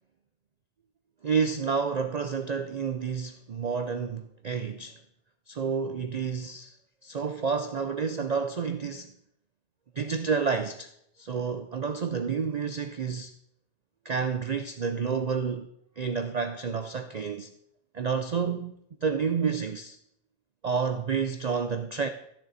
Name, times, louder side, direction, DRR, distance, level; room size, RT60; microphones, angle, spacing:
voice 1, 1.2-5.0 5.5-6.7 7.0-9.1 10.0-10.9 11.2-13.3 14.0-15.7 16.0-17.5 17.9-20.0 20.6-22.1, right 5 dB, 70° right, 0.3 m, -29 dB
14.0 x 6.9 x 4.1 m
omnidirectional pair, 1.4 m